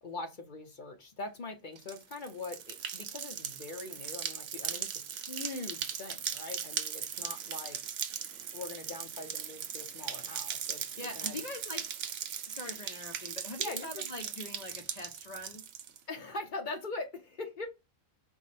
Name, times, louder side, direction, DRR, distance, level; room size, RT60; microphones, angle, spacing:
voice 1, 0.0-7.8 8.5-11.4 13.6-14.0 16.1-17.7, left 3 dB, 45° left, 0.7 m, -42 dB
sound 1, 1.8-16.0, right 8 dB, 65° right, 0.9 m, -39 dB
voice 2, 11.0-11.9 12.5-15.6, left 2 dB, 70° left, 0.3 m, -43 dB
4.6 x 2.1 x 4.0 m
omnidirectional pair, 1.4 m